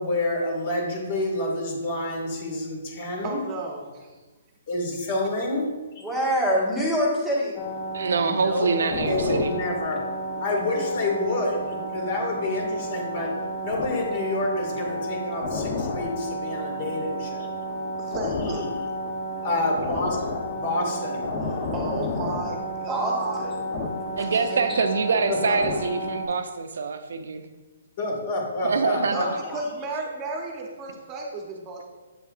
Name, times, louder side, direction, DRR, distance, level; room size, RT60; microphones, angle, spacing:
voice 1, 0.0-3.4 4.7-5.7 6.0-6.1 8.2-8.7 9.1-10.0 10.4-13.3 13.6-17.5 18.2-18.7 19.4-21.2 25.3-25.6 28.0-29.6, left 2 dB, 50° left, -1 dB, 2.0 m, -28 dB
voice 2, 3.2-4.1 18.1-18.7 21.7-23.5 29.0-29.3 29.5-31.8, right 3 dB, 25° right, 1 dB, 0.9 m, -33 dB
voice 3, 6.0-7.6 21.3-21.8 22.9-23.1 23.4-23.5 24.5-24.8, equal, 5° left, -5 dB, 1.5 m, -26 dB
sound 1, 7.6-26.3, equal, 30° left, 0.8 m, -31 dB
voice 4, 7.9-9.5 24.2-27.4 28.6-29.4, right 4 dB, 70° right, 8 dB, 0.5 m, -25 dB
7.8 x 5.4 x 2.5 m, 1.2 s
hypercardioid pair, 145°, 0 cm